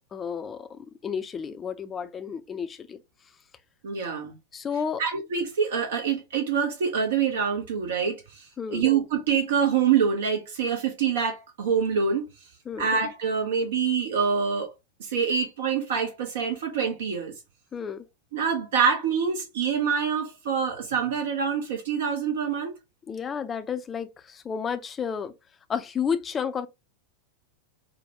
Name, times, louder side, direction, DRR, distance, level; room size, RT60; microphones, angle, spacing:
voice 1, 0.0-3.0 4.5-5.0 8.6-8.8 12.7-12.9 17.7-18.0 23.1-25.3 25.7-26.7, left 7 dB, 20° left, 0.5 m, -31 dB
voice 2, 3.8-4.4 5.0-12.3 12.8-14.7 15.0-17.3 18.3-22.7, right 6 dB, 60° right, 0.8 m, -26 dB
5.0 x 2.2 x 2.7 m
figure-of-eight pair, 90°, 0 cm